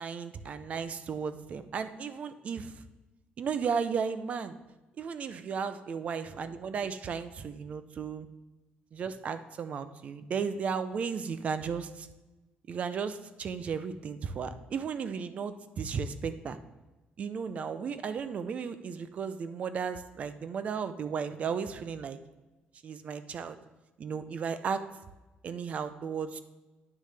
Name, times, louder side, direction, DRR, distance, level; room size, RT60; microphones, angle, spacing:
voice 1, 0.0-2.7 3.4-4.6 5.0-8.3 8.9-12.1 12.7-16.6 17.2-22.2 22.8-23.6 24.0-24.8 25.4-26.4, right 6 dB, 40° right, 11 dB, 0.5 m, -34 dB
9.4 x 6.4 x 3.3 m, 1.1 s
cardioid pair, 160°, 3 cm